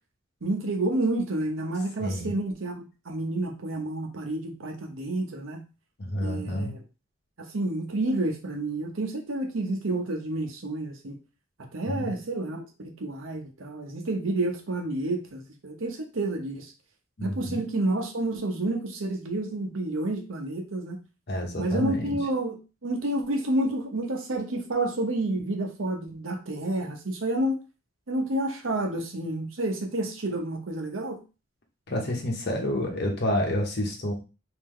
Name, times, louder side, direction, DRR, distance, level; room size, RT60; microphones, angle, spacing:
voice 1, 0.4-5.6 6.2-6.8 7.4-11.2 11.7-16.7 17.2-21.0 21.6-27.6 28.1-31.2, right 2 dB, 75° right, 3 dB, 0.9 m, -29 dB
voice 2, 2.0-2.3 6.0-6.7 11.8-12.1 17.2-17.6 21.3-22.2 31.9-34.1, left 1 dB, 55° left, 2 dB, 1.0 m, -29 dB
3.2 x 2.8 x 3.6 m, 0.30 s
head